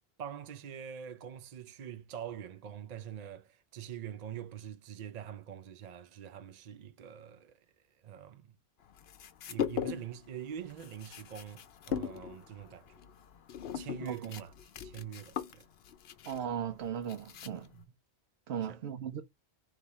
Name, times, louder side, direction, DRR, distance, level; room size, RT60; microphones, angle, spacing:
voice 1, 0.2-7.6 8.0-8.5 9.5-12.9 13.7-14.5 14.8-15.7 17.7-17.9 18.6-18.8, right 9 dB, 55° right, 0.5 m, -44 dB
sound 1, 9.0-10.2 10.5-17.8, left 8 dB, 70° left, 0.9 m, -39 dB
voice 2, 16.3-17.7 18.5-19.2, right 8 dB, 70° right, 0.9 m, -37 dB
3.4 x 3.3 x 4.1 m
omnidirectional pair, 1.1 m